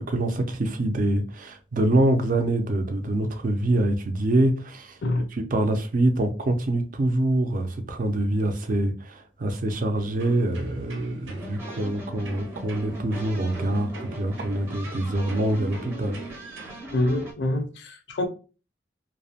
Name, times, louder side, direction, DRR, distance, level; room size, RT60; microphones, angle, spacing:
voice 1, 0.0-5.0 5.3-16.2, right 1 dB, 45° right, 0.4 m, -25 dB
sound 1, 9.9-16.8, right 2 dB, 85° right, 0.7 m, -42 dB
sound 2, 11.4-17.3, right 1 dB, 15° right, 0.7 m, -40 dB
voice 2, 16.9-18.3, left 1 dB, 65° left, 0.5 m, -26 dB
2.6 x 2.1 x 2.7 m
head